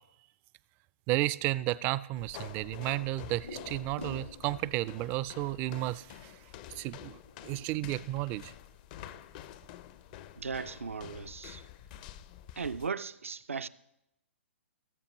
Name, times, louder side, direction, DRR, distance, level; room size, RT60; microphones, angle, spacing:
voice 1, 1.1-6.1 6.8-7.2 7.4-8.5, right 17 dB, 25° right, 0.3 m, -32 dB
sound 1, 2.2-12.9, left 11 dB, 40° left, 0.5 m, -48 dB
sound 2, 2.6-4.7 5.0-5.1 5.6-6.0 6.4-8.1 8.3-9.3 9.6-9.7 10.0-10.4, left 1 dB, 90° left, 3.7 m, -50 dB
voice 2, 10.4-11.6 12.6-13.7, right 5 dB, 85° right, 0.5 m, -37 dB
19.0 x 6.9 x 3.0 m
figure-of-eight pair, 125°, 7 cm